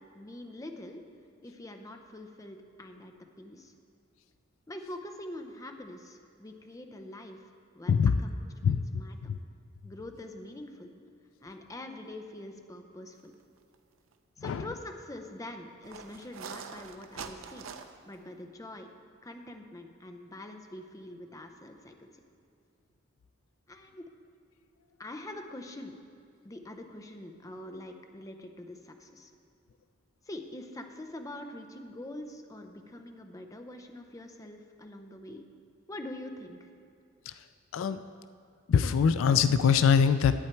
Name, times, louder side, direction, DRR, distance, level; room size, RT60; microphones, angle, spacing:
voice 1, 0.1-1.1 1.4-3.7 4.7-7.5 7.7-8.4 8.6-9.3 9.8-10.9 11.4-13.3 14.4-17.6 18.0-18.9 19.2-22.1 23.7-24.1 25.0-26.0 26.4-29.3 30.2-35.5 35.9-36.7, left 1 dB, 15° left, 5 dB, 0.6 m, -44 dB
voice 2, 8.6-9.0 9.3-9.4 14.4-14.7 37.3-37.4 37.7-38.0 38.7-40.3, left 6 dB, 70° left, 11 dB, 0.3 m, -23 dB
sound 1, 13.6-13.8 14.1-14.2 15.8-18.1, right 6 dB, 75° right, 0.6 m, -44 dB
10.5 x 8.8 x 4.5 m, 2.5 s
head